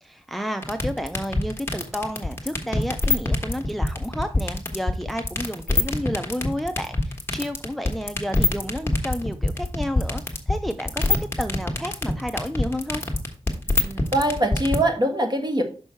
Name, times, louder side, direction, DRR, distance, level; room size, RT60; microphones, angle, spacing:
voice 1, 0.0-13.0, equal, ahead, 8 dB, 0.5 m, -31 dB
sound 1, 0.6-14.8, left 2 dB, 20° left, 1.4 m, -23 dB
voice 2, 13.8-15.6, right 1 dB, 40° right, 3 dB, 1.6 m, -23 dB
6.1 x 5.5 x 4.4 m, 0.38 s
wide cardioid pair, 85°, 12 cm